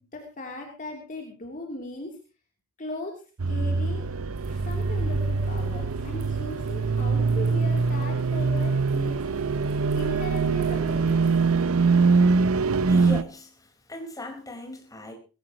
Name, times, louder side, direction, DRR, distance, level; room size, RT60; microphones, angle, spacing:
voice 1, 0.1-2.1 2.8-3.1 3.5-4.1 4.6-9.2 9.9-11.2, left 2 dB, 35° left, 1 dB, 3.2 m, -38 dB
sound 1, 3.4-13.2, right 4 dB, 75° right, 0.7 m, -23 dB
sound 2, 4.3-11.7, right 1 dB, 40° right, 7.4 m, -50 dB
voice 2, 12.9-15.1, left 2 dB, 15° left, 2 dB, 4.5 m, -37 dB
20.0 x 16.5 x 3.0 m, 0.34 s
head